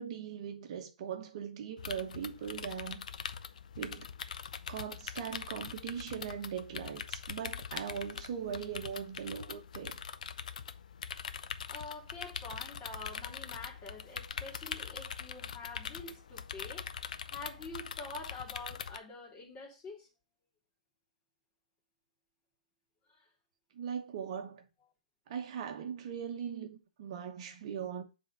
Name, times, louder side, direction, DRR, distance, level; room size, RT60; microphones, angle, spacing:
voice 1, 0.0-3.0 3.8-4.1 4.7-10.0 23.7-24.7 25.3-28.0, right 8 dB, 45° right, 1.0 m, -40 dB
sound 1, 1.8-19.0, left 7 dB, 65° left, 0.6 m, -43 dB
voice 2, 11.7-20.1 23.1-23.3, left 3 dB, 20° left, 2.2 m, -46 dB
7.2 x 3.6 x 5.4 m
hypercardioid pair, 135°, 4 cm